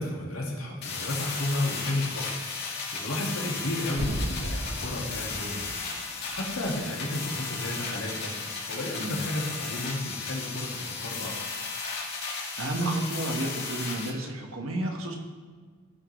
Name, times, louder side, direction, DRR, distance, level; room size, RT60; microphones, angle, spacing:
voice 1, 0.0-11.3, left 1 dB, 80° left, -3 dB, 2.3 m, -33 dB
sound 1, 0.8-14.1, left 4 dB, 50° left, 1.8 m, -35 dB
sound 2, 3.9-6.8 7.2-7.3, equal, 35° right, 2.5 m, -35 dB
voice 2, 12.6-15.2, right 1 dB, 75° right, 2 dB, 1.5 m, -31 dB
16.5 x 6.3 x 3.3 m, 1.5 s
head